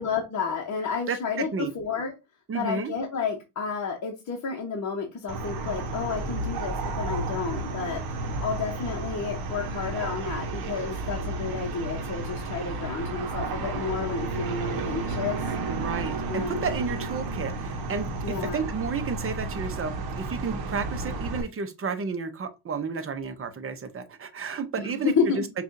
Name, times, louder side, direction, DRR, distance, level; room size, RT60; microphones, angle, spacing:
voice 1, 0.0-2.1 2.5-8.0 8.4-15.4 16.3-16.7 18.2-18.7 24.8-25.5, left 5 dB, 40° left, 0.9 m, -31 dB
voice 2, 1.1-1.7 2.5-2.9 15.6-19.9 20.2-25.5, right 5 dB, 30° right, 0.7 m, -32 dB
sound 1, 5.3-21.4, right 3 dB, 55° right, 0.8 m, -32 dB
5.4 x 2.4 x 2.6 m
cardioid pair, 100°, 44 cm